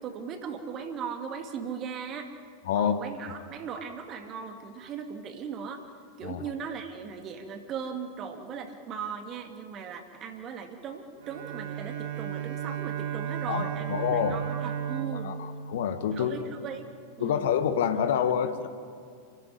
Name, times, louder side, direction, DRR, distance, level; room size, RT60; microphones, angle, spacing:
voice 1, 0.0-2.3 2.7-5.8 6.2-15.4 16.1-16.8 17.2-17.5, right 6 dB, 30° right, 5 dB, 2.5 m, -38 dB
Bowed string instrument, 11.2-16.7, right 9 dB, 60° right, 3.1 m, -35 dB
voice 2, 13.9-14.4 15.2-16.4 17.2-18.7, left 8 dB, 55° left, 9 dB, 1.4 m, -27 dB
28.5 x 14.0 x 10.0 m, 2.2 s
figure-of-eight pair, 90°, 0 cm